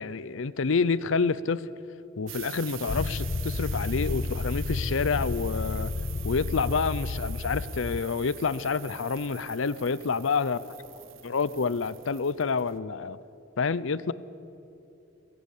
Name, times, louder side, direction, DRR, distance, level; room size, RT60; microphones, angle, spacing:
voice 1, 0.0-1.6 2.2-5.9 6.2-10.6 11.2-13.2 13.6-14.1, left 5 dB, 80° left, 0.6 m, -28 dB
sound 1, 2.3-12.8, right 14 dB, 80° right, 0.9 m, -45 dB
sound 2, 2.9-8.0, left 3 dB, 40° left, 0.4 m, -31 dB
voice 2, 10.4-11.5, equal, 50° right, 4.1 m, -53 dB
22.0 x 16.0 x 8.4 m
head